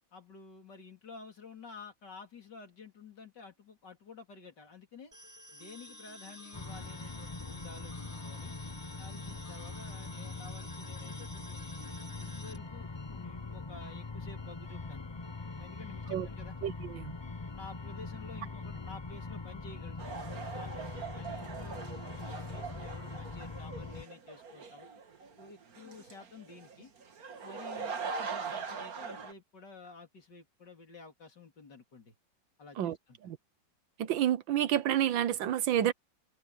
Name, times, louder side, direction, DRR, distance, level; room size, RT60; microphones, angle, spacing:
voice 1, 0.1-5.1 5.5-8.5 9.0-15.1 15.5-16.6 17.5-21.8 22.2-24.9 25.4-26.9 27.4-32.1 32.6-33.2, left 5 dB, 65° left, 4.0 m, -51 dB
sound 1, 5.1-12.6, left 1 dB, 10° right, 7.9 m, -51 dB
sound 2, 6.5-24.0, left 3 dB, 25° left, 0.6 m, -42 dB
voice 2, 16.6-17.1 32.8-33.0 33.2-33.4 34.0-35.9, right 11 dB, 85° right, 1.7 m, -29 dB
sound 3, 20.0-29.3, right 5 dB, 50° right, 2.1 m, -42 dB
omnidirectional pair, 2.0 m